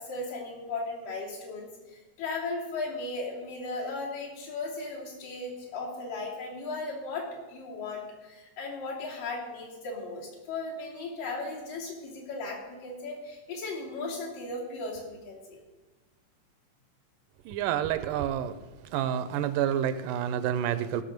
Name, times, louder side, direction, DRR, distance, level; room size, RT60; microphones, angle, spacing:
voice 1, 0.0-15.6, left 3 dB, 75° left, -3 dB, 4.6 m, -36 dB
voice 2, 17.5-18.6 18.8-21.0, right 10 dB, 85° right, 13 dB, 2.3 m, -29 dB
16.5 x 6.8 x 6.5 m, 1.2 s
omnidirectional pair, 3.8 m